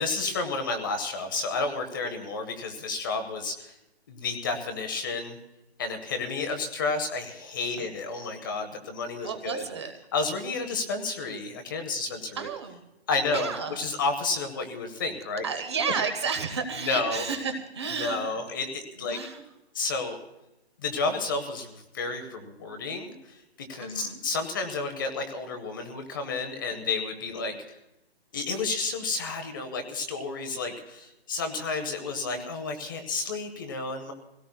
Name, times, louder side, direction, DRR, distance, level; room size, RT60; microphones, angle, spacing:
voice 1, 0.0-3.7 4.1-5.4 5.8-9.7 10.1-12.5 13.1-15.5 16.7-17.2 17.9-19.2 19.7-20.2 20.8-23.4 23.7-27.8 28.3-34.1, left 3 dB, 20° left, 6 dB, 0.8 m, -31 dB
voice 2, 9.2-9.9 12.4-12.8 13.3-13.8 15.4-18.4 19.0-19.4 23.8-24.2 27.4-27.5 32.1-32.4, right 5 dB, 25° right, 7 dB, 0.7 m, -32 dB
25.0 x 17.0 x 2.3 m, 0.91 s
hypercardioid pair, 170°, 32 cm